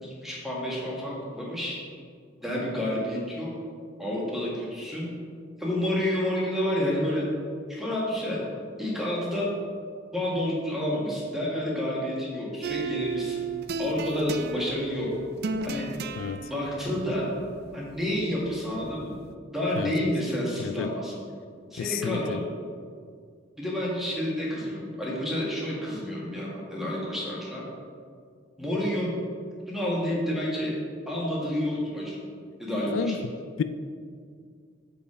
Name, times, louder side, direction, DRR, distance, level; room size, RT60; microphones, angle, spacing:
voice 1, 0.0-1.8 2.4-3.5 4.0-5.1 5.6-7.2 7.7-8.4 8.8-9.5 10.1-13.4 13.8-15.1 15.6-15.9 16.5-17.3 17.7-19.2 19.5-21.2 21.7-22.4 23.6-27.6 28.6-29.1 29.7-30.7 31.1-32.2 32.6-33.2, left 1 dB, ahead, -5 dB, 1.6 m, -29 dB
sound 1, 12.6-19.3, right 4 dB, 55° right, 0.4 m, -35 dB
voice 2, 16.2-16.5 19.8-20.1 20.6-20.9 21.8-22.4 32.9-33.2 33.6-33.7, left 6 dB, 75° left, 11 dB, 0.3 m, -30 dB
6.8 x 5.2 x 4.8 m, 2.1 s
head